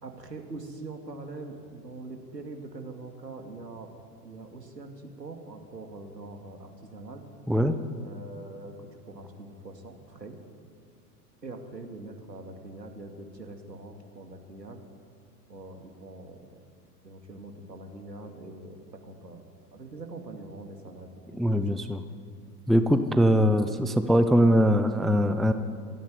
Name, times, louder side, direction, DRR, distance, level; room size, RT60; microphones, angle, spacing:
voice 1, 0.0-3.9 4.2-7.3 8.0-10.4 11.4-14.8 15.5-16.5 17.0-19.4 19.7-21.6, right 2 dB, 85° right, 4 dB, 2.5 m, -43 dB
voice 2, 21.4-22.0 22.7-25.5, equal, ahead, 9 dB, 0.5 m, -22 dB
26.5 x 11.0 x 9.5 m, 2.3 s
figure-of-eight pair, 85°, 48 cm